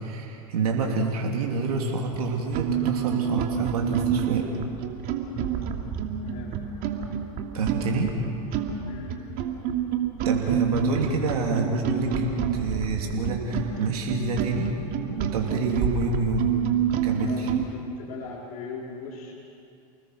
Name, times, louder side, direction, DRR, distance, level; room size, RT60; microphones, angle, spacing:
voice 1, 0.0-4.5 7.5-8.2 10.2-14.7 15.1-16.6 16.9-17.5, right 3 dB, 85° right, 0 dB, 2.8 m, -27 dB
sound 1, 2.1-2.2 2.5-17.7, right 8 dB, 50° right, 2.6 m, -28 dB
voice 2, 6.2-6.6 8.8-9.3 17.2-19.3, left 4 dB, 65° left, -4 dB, 4.1 m, -39 dB
29.5 x 20.5 x 6.4 m, 2.7 s
hypercardioid pair, 100°, 19 cm